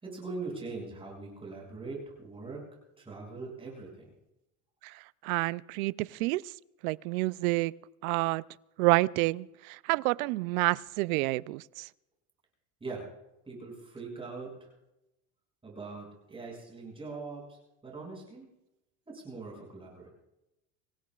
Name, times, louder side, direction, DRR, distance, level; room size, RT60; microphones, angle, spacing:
voice 1, 0.0-2.7 3.0-4.1 12.8-13.1 13.4-14.7 15.6-18.5 19.1-20.1, right 3 dB, 15° right, 6.3 m, -42 dB
voice 2, 5.2-6.4 6.8-7.7 8.0-8.4 8.8-11.9, right 22 dB, 85° right, 0.5 m, -28 dB
25.5 x 16.5 x 2.4 m
cardioid pair, 145°, 41 cm